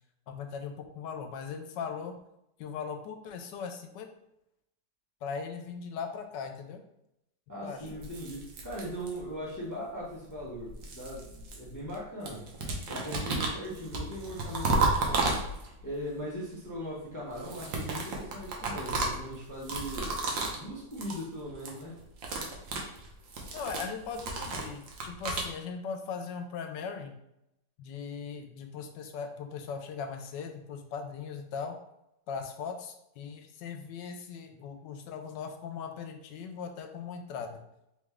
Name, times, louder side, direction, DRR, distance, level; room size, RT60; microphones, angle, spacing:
voice 1, 0.3-2.2 2.6-4.1 5.2-6.8 7.6-7.9 23.5-27.1 27.8-31.8 32.3-37.6, left 6 dB, 80° left, 6 dB, 1.2 m, -39 dB
voice 2, 7.5-12.4 12.9-15.5 15.8-22.0, equal, 20° left, -5 dB, 0.5 m, -39 dB
sound 1, 7.9-9.4 10.4-12.0 12.2-15.9 17.3-20.6 20.9-21.2 21.5-21.8 22.1-25.5, right 3 dB, 85° right, 1.5 m, -33 dB
3.7 x 3.2 x 3.5 m, 0.83 s
omnidirectional pair, 1.9 m